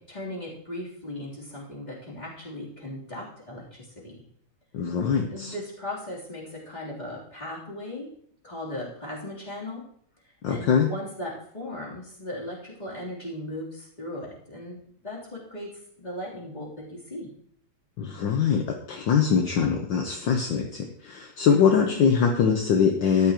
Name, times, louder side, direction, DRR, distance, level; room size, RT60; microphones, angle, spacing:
voice 1, 0.1-4.2 5.3-8.1 8.4-9.8 10.5-15.7 16.0-17.3 21.4-22.0, left 1 dB, 20° left, -5 dB, 3.5 m, -37 dB
voice 2, 4.7-5.5 10.4-10.9 18.0-23.3, left 6 dB, 65° left, 3 dB, 1.6 m, -23 dB
13.5 x 10.5 x 3.0 m, 0.65 s
omnidirectional pair, 2.3 m